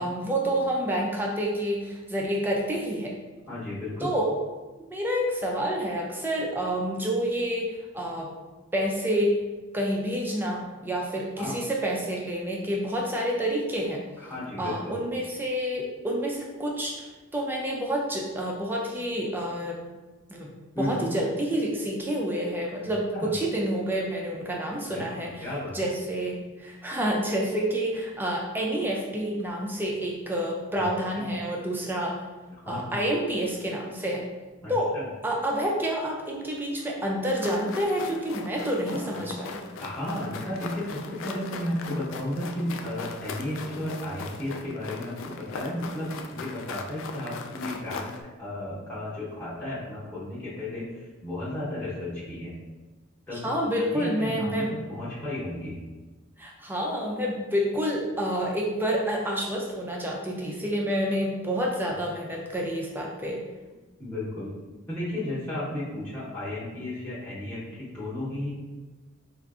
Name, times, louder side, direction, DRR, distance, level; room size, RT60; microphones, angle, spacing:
voice 1, 0.0-3.1 4.0-4.4 4.9-8.3 8.7-9.4 9.7-14.0 14.6-19.8 20.3-20.5 20.8-25.3 25.7-32.2 32.7-34.3 34.7-34.9 35.2-39.6 53.3-54.8 56.4-63.4, equal, 10° right, -1 dB, 0.4 m, -28 dB
voice 2, 3.5-4.1 11.4-11.6 14.2-15.0 20.7-21.1 23.1-23.3 24.9-25.8 31.2-31.4 32.6-33.0 34.6-35.1 38.9-39.3 39.8-48.1 48.4-52.6 53.3-53.5 53.9-55.8 61.9-62.0 64.0-64.5 64.9-68.5, left 1 dB, 10° left, -11 dB, 0.8 m, -34 dB
sound 1, 37.3-48.2, left 4 dB, 65° left, 0.3 m, -39 dB
4.5 x 2.5 x 2.4 m, 1.3 s
head